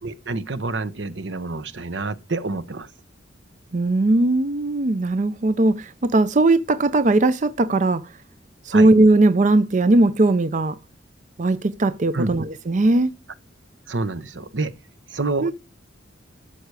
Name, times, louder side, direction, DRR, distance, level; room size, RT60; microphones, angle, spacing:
voice 1, 0.0-2.9 8.7-8.9 12.1-12.4 13.9-14.7 15.1-15.5, right 3 dB, 70° right, 0.9 m, -28 dB
voice 2, 3.7-8.1 8.6-10.8 11.4-13.1 15.4-15.5, right 2 dB, 40° right, 0.5 m, -19 dB
13.0 x 6.6 x 4.8 m
head